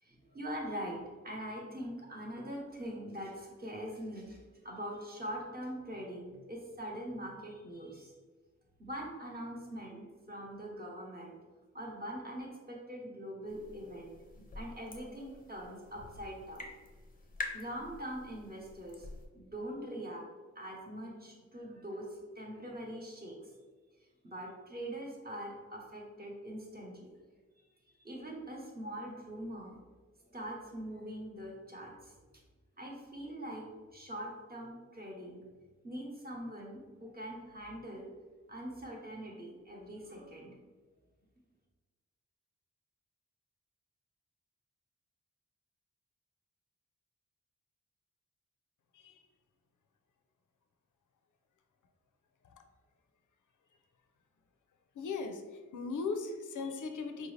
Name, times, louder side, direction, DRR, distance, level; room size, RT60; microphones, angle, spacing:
voice 1, 0.0-1.0 1.2-4.4 4.6-8.1 8.8-11.4 11.7-16.7 17.4-19.1 19.3-20.2 20.5-23.5 24.2-27.1 28.0-29.8 30.2-32.1 32.8-33.6 33.9-35.5 35.8-38.1 38.5-40.6, equal, 30° right, -2 dB, 0.9 m, -43 dB
sound 1, 13.5-19.3, left 2 dB, 30° left, 0.5 m, -47 dB
voice 2, 55.0-55.4 55.7-57.3, left 4 dB, 80° left, 6 dB, 0.5 m, -38 dB
4.5 x 2.6 x 3.1 m, 1.4 s
wide cardioid pair, 160°, 30 cm